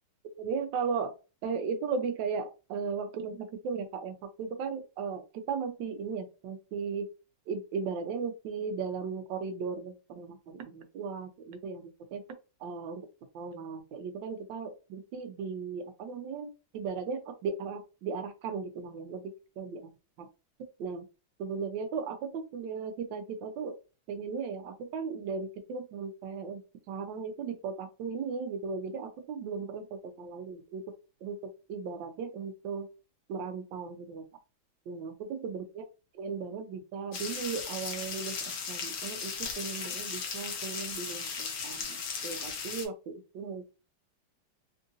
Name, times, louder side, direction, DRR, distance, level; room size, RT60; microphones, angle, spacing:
voice 1, 0.4-1.2 1.4-7.1 7.5-12.2 12.6-13.0 13.3-19.8 20.2-20.3 20.8-21.0 21.4-23.7 24.1-26.6 26.9-30.8 31.2-31.4 31.7-32.9 33.3-34.2 34.9-35.8 36.1-43.6, right 5 dB, 75° right, 1.3 m, -36 dB
sound 1, 37.1-42.8, left 5 dB, 65° left, 1.0 m, -37 dB
3.7 x 2.5 x 2.6 m
omnidirectional pair, 2.2 m